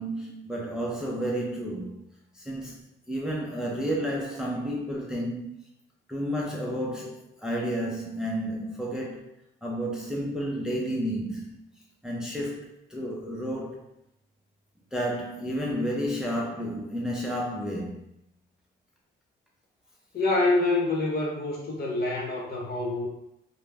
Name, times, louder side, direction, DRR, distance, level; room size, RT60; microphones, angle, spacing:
voice 1, 0.0-2.0 2.3-5.5 6.1-9.3 9.6-11.6 12.0-13.8 14.9-18.1, equal, 5° right, 0.5 m, -31 dB
voice 2, 20.1-23.1, left 2 dB, 55° left, 0.8 m, -26 dB
2.2 x 2.0 x 3.3 m
cardioid pair, 90°, 20 cm